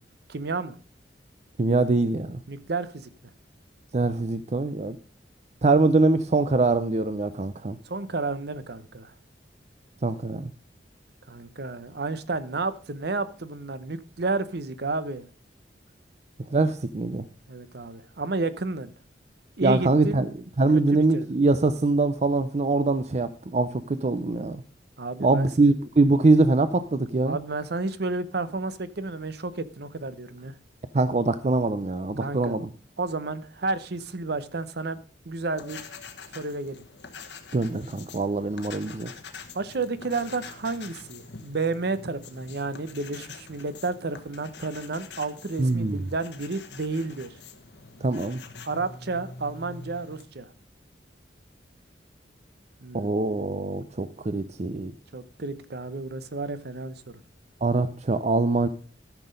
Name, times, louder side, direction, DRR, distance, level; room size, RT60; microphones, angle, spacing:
voice 1, 0.3-0.8 2.5-3.1 7.9-9.1 11.3-15.3 17.5-18.9 19.6-20.3 20.7-21.3 25.0-25.5 27.2-30.6 32.2-32.6 33.0-35.0 35.3-35.8 36.3-36.8 39.5-47.3 48.7-50.5 52.8-53.2 55.1-57.2, right 3 dB, 60° right, 0.8 m, -31 dB
voice 2, 1.6-2.4 3.9-5.0 5.6-7.8 10.0-10.5 16.5-17.2 19.6-20.3 20.6-24.6 25.2-27.4 30.9-32.7 37.5-39.1 45.6-46.0 48.0-48.4 52.9-54.9 57.6-58.7, right 3 dB, 40° right, 0.5 m, -23 dB
sound 1, 35.5-50.2, left 4 dB, 70° left, 1.3 m, -45 dB
13.5 x 6.1 x 5.1 m
head